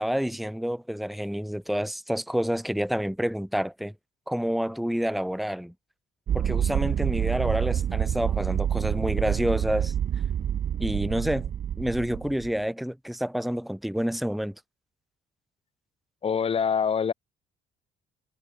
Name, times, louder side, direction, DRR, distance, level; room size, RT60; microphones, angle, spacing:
voice 1, 0.0-3.9 4.3-5.7 6.3-9.9 10.8-11.5 11.8-14.5, equal, ahead, 2.6 m, -28 dB
sound 1, 6.3-12.5, right 9 dB, 50° right, 2.4 m, -27 dB
voice 2, 16.2-17.1, left 7 dB, 30° left, 1.8 m, -24 dB
cardioid pair, 160°, 18 cm